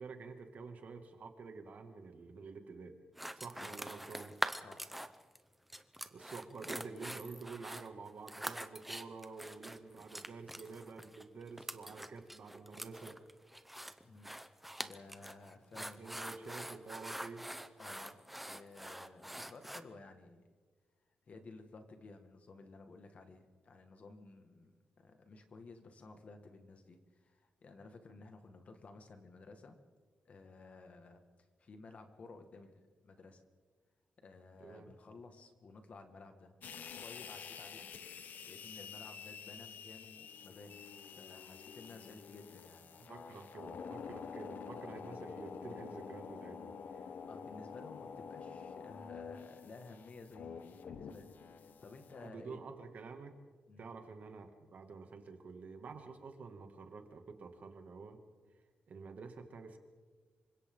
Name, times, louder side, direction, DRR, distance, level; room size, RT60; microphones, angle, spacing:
voice 1, 0.0-2.9 3.4-4.3 6.1-13.2 15.7-17.4 34.6-34.9 43.0-47.1 52.2-53.3 53.8-58.2 58.9-59.8, right 4 dB, 50° right, 5 dB, 2.3 m, -49 dB
sound 1, 3.2-5.4 5.7-19.8, right 1 dB, 5° right, 0.8 m, -44 dB
voice 2, 4.6-5.0 14.0-14.4 14.8-16.2 17.8-20.4 21.3-29.8 30.3-31.2 31.6-33.4 34.2-36.5 36.9-37.9 38.4-40.8 41.1-43.5 47.3-52.6 53.7-53.9, left 3 dB, 45° left, 6 dB, 1.9 m, -55 dB
sound 2, 36.6-52.3, left 6 dB, 60° left, 1.0 m, -48 dB
27.5 x 25.0 x 3.9 m, 1.4 s
wide cardioid pair, 155°, 3 cm